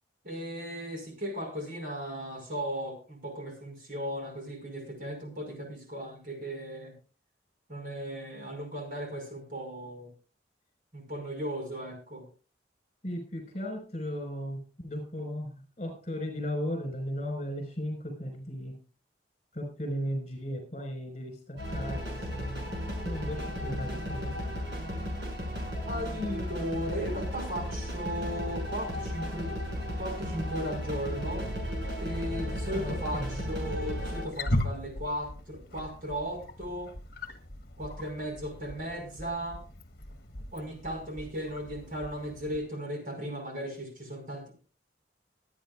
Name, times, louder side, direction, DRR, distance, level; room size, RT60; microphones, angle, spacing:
voice 1, 0.2-6.9 7.7-10.1 10.9-12.2 25.9-29.5 30.0-31.5 32.0-36.9 37.8-39.6 40.5-44.5, equal, 50° right, 3 dB, 5.3 m, -36 dB
voice 2, 13.0-18.7 19.5-22.7 23.0-24.3 32.7-33.4, equal, 35° left, 4 dB, 5.1 m, -36 dB
sound 1, 21.6-34.2, equal, 65° right, 6.9 m, -35 dB
Wild animals, 34.1-42.6, left 1 dB, 55° left, 1.4 m, -38 dB
24.5 x 9.6 x 2.5 m, 0.37 s
head